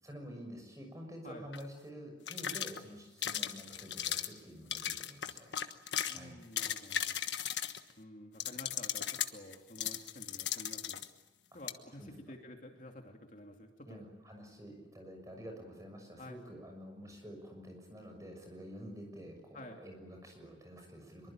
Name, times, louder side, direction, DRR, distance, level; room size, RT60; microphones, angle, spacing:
voice 1, 0.0-5.5 6.1-6.4 12.0-12.1 13.9-21.3, equal, 20° right, 3 dB, 6.5 m, -49 dB
sound 1, 1.5-1.7 2.3-2.8 3.2-4.4 4.7-6.2 6.4-7.9 8.4-11.1 11.7-11.8, left 10 dB, 80° left, 1.3 m, -36 dB
voice 2, 6.1-7.2 8.0-11.0 11.5-14.0 16.2-16.4 19.5-19.8, left 1 dB, 45° left, 2 dB, 2.8 m, -51 dB
24.5 x 23.5 x 9.0 m, 1.0 s
head